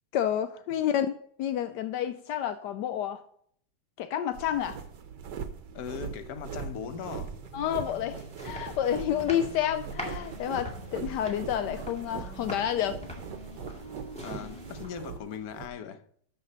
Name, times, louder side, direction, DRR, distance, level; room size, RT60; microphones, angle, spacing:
voice 1, 0.1-3.2 4.0-4.8 7.5-13.0, left 10 dB, 80° left, 1.2 m, -30 dB
sound 1, 4.3-15.7, right 7 dB, 85° right, 1.6 m, -41 dB
voice 2, 5.7-7.4 14.2-16.0, left 8 dB, 65° left, 1.3 m, -39 dB
sound 2, 6.4-15.4, left 1 dB, 25° left, 1.8 m, -49 dB
sound 3, 7.4-15.2, equal, 5° left, 1.9 m, -45 dB
12.5 x 6.3 x 4.0 m
omnidirectional pair, 1.8 m